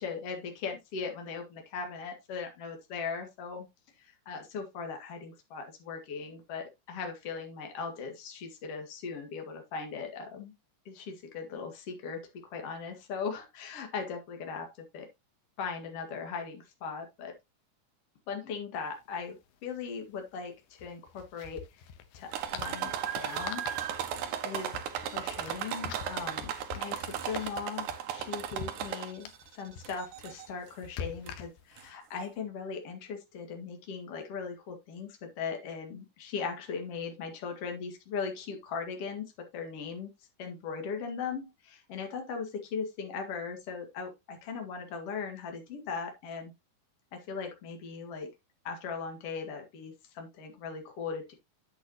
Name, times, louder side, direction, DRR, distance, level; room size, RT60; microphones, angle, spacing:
voice 1, 0.0-3.7 4.0-10.5 10.9-12.2 12.5-15.1 15.6-17.3 18.3-19.4 19.6-21.6 22.1-23.6 24.4-24.7 25.0-40.1 40.4-46.5 47.1-48.3 48.6-51.3, left 5 dB, 50° left, 4 dB, 2.5 m, -39 dB
sound 1, 18.7-18.8 19.1-19.2 20.7-31.9, left 7 dB, 90° left, 2.9 m, -46 dB
sound 2, 22.3-29.4 29.8-30.5 31.3-31.4 31.8-31.9, right 9 dB, 70° right, 2.1 m, -36 dB
8.5 x 8.3 x 2.9 m, 0.21 s
omnidirectional pair, 4.2 m